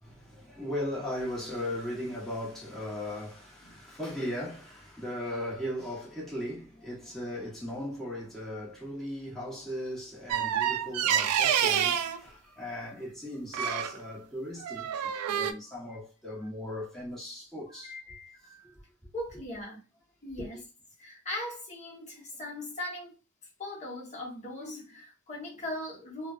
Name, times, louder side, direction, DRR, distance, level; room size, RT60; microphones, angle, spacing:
voice 1, 0.0-17.9, left 1 dB, ahead, 1.1 m, -37 dB
sound 1, 10.3-12.2 13.5-14.0 14.6-15.5, right 9 dB, 85° right, 0.3 m, -27 dB
voice 2, 17.7-18.7 19.1-19.8 20.2-20.7 21.0-23.2 23.6-26.3, left 1 dB, 35° left, 1.0 m, -40 dB
3.1 x 2.2 x 2.4 m
head